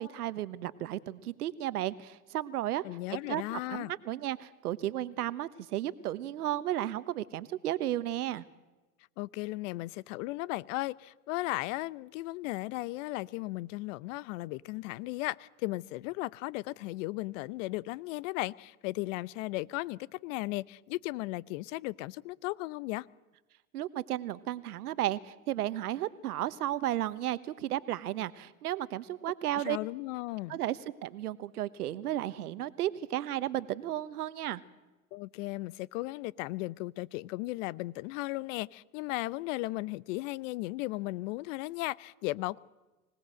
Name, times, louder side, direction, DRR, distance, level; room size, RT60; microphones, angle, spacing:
voice 1, 0.0-2.8 3.1-8.4 23.7-29.8 30.5-34.6, right 13 dB, 80° right, 1.2 m, -34 dB
voice 2, 2.8-3.9 9.2-23.1 29.6-30.6 35.1-42.6, left 20 dB, 55° left, 0.8 m, -36 dB
25.0 x 18.5 x 7.7 m
hypercardioid pair, 100°, 45 cm